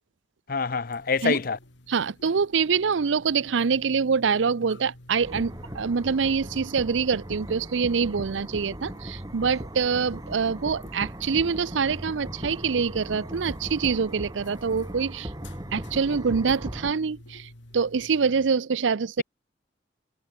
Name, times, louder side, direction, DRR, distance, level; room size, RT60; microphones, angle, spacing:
voice 1, 0.5-1.6, left 5 dB, 50° left, 0.6 m, -26 dB
sound 1, 0.8-18.5, left 1 dB, 75° left, 2.7 m, -51 dB
voice 2, 1.9-15.3 15.7-19.2, right 5 dB, 90° right, 0.6 m, -25 dB
sound 2, 5.2-16.9, equal, 20° right, 2.9 m, -38 dB
head